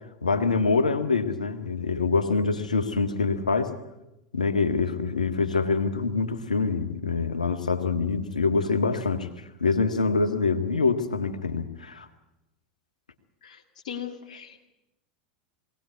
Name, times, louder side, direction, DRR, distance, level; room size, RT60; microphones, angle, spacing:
voice 1, 0.2-3.8 4.3-9.3 9.6-12.1, left 4 dB, 85° left, 7 dB, 1.8 m, -25 dB
voice 2, 13.4-14.6, left 8 dB, 70° left, 3 dB, 2.2 m, -39 dB
21.5 x 18.5 x 8.4 m, 0.92 s
hypercardioid pair, 90°, 4 cm